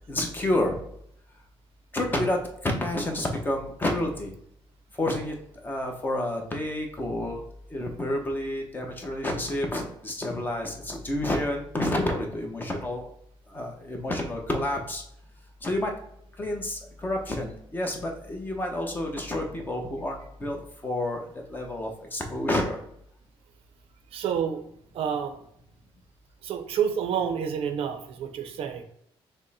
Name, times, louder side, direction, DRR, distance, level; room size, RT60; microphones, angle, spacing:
voice 1, 0.1-0.8 1.9-2.4 2.6-4.3 5.0-5.3 5.6-7.4 7.7-13.0 13.5-15.0 15.6-15.9 16.4-21.2 21.5-22.8, left 1 dB, 20° left, 2 dB, 0.8 m, -29 dB
voice 2, 24.1-24.6 24.9-25.4 26.4-28.8, right 8 dB, 70° right, 8 dB, 0.6 m, -29 dB
5.3 x 2.1 x 4.1 m, 0.72 s
cardioid pair, 135°, 10 cm